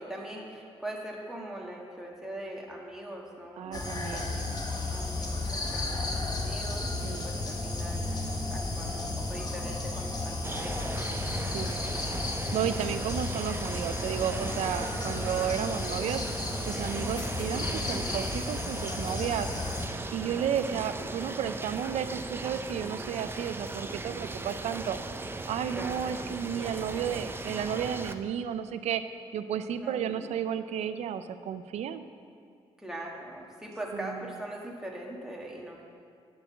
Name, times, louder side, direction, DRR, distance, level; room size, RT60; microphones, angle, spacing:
voice 1, 0.0-4.6 4.9-8.2 8.5-11.0 17.0-17.3 20.5-20.8 25.7-26.2 29.8-30.3 32.8-35.8, right 1 dB, 5° right, -2 dB, 1.6 m, -42 dB
voice 2, 3.6-4.6 7.0-7.3 11.5-11.7 12.5-16.2 16.7-19.5 20.1-25.0 25.5-29.0 29.3-32.0 33.9-34.3, right 9 dB, 85° right, 11 dB, 0.5 m, -33 dB
sound 1, 3.7-19.9, left 2 dB, 35° left, 1.3 m, -33 dB
sound 2, 10.4-28.2, right 2 dB, 20° right, 0.5 m, -37 dB
10.0 x 4.7 x 7.3 m, 2.4 s
cardioid pair, 85°, 11 cm